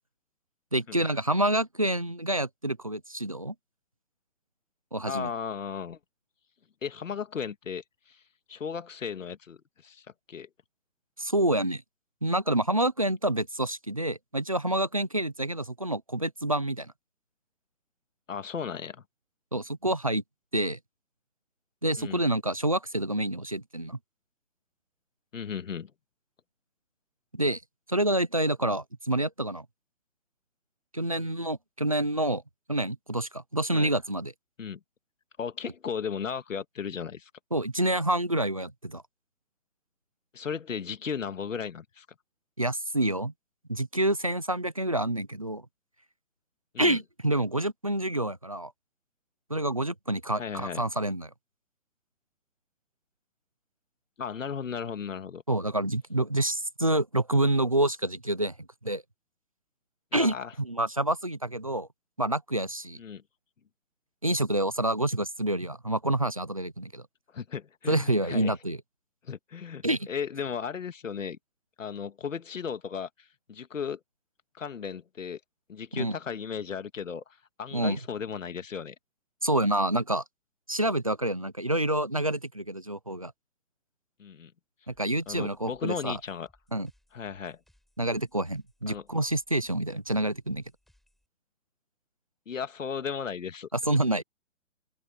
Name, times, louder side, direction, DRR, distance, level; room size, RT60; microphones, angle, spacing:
voice 1, 0.7-3.5 4.9-5.3 11.2-11.8 12.2-16.9 19.5-20.2 20.5-20.8 21.8-24.0 27.3-27.6 27.9-29.7 30.9-32.4 32.7-34.3 37.5-39.0 42.6-43.3 43.7-45.6 46.8-48.7 49.5-51.3 55.5-58.5 58.8-59.0 60.1-61.9 62.2-63.0 64.2-67.0 67.9-68.8 69.8-70.1 75.9-76.2 77.7-78.0 79.4-80.2 80.7-83.3 84.9-86.2 86.7-86.9 88.0-90.6 93.7-94.2, right 1 dB, 25° right, 0.5 m, -28 dB
voice 2, 5.1-6.0 6.8-8.2 8.5-10.5 18.3-19.0 22.0-22.2 25.3-25.9 33.7-33.9 34.6-34.8 35.4-37.3 40.3-42.1 46.7-47.0 50.4-50.8 54.2-55.4 60.1-60.5 63.0-63.2 67.3-68.5 69.2-71.4 71.8-74.0 74.5-75.4 75.7-77.2 77.6-79.0 84.2-84.5 85.3-86.5 87.1-87.6 88.9-89.0 92.5-93.7, left 6 dB, 70° left, 2.0 m, -35 dB
sound 1, 84.9-91.3, left 1 dB, ahead, 5.9 m, -67 dB
open air
hypercardioid pair, 175°, 39 cm